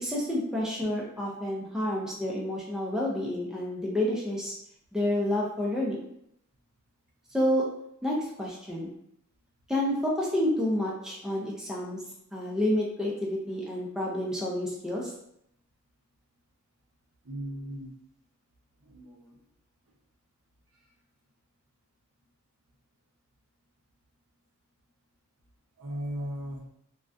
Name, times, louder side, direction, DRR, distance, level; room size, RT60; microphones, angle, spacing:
voice 1, 0.0-4.5 4.9-6.1 7.3-7.6 8.0-8.9 9.7-12.0 12.3-15.1, left 1 dB, 5° right, -4 dB, 0.4 m, -29 dB
voice 2, 17.2-17.9 18.8-19.3 25.8-26.6, equal, 75° right, -1 dB, 0.6 m, -37 dB
2.3 x 2.1 x 2.5 m, 0.76 s
head